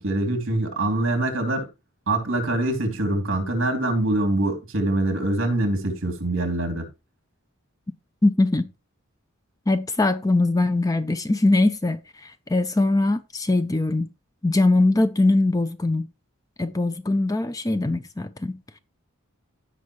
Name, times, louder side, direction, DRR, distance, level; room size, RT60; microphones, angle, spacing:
voice 1, 0.0-1.7 2.1-6.9, right 2 dB, 60° right, 2.9 m, -24 dB
voice 2, 8.2-8.7 9.7-14.1 14.4-16.1 16.6-18.6, left 2 dB, 15° left, 0.5 m, -21 dB
16.0 x 5.4 x 3.1 m
head